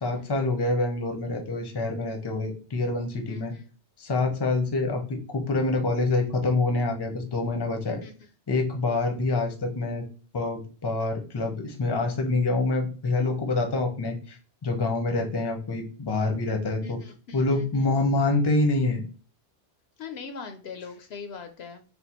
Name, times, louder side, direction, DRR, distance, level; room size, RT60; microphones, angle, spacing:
voice 1, 0.0-3.5 4.0-8.0 8.5-10.0 10.3-14.4 14.6-17.0 17.3-19.0, left 2 dB, 25° left, 4 dB, 0.6 m, -26 dB
voice 2, 3.3-3.6 8.0-8.1 16.8-17.9 20.0-21.8, left 5 dB, 70° left, 6 dB, 0.8 m, -41 dB
3.5 x 2.1 x 4.2 m, 0.36 s
omnidirectional pair, 1.2 m